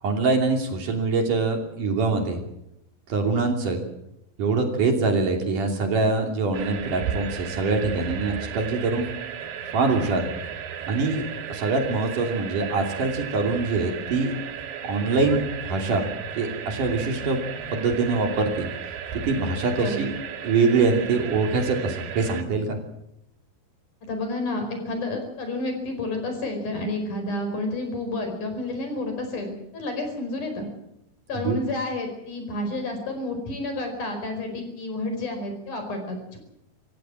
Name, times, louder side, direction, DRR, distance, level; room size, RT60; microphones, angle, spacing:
voice 1, 0.0-2.4 3.1-3.8 4.4-9.0 9.7-10.3 10.9-11.2 11.5-14.3 14.9-16.1 16.4-17.4 17.7-18.7 19.2-20.1 20.4-22.8 31.3-31.6, right 3 dB, 60° right, 3 dB, 4.3 m, -24 dB
sound 1, 6.5-22.4, right 8 dB, 85° right, 3.8 m, -35 dB
voice 2, 19.7-20.1 24.0-30.7 31.3-36.4, left 2 dB, 55° left, 5 dB, 6.2 m, -30 dB
26.0 x 16.0 x 7.7 m, 0.82 s
omnidirectional pair, 4.4 m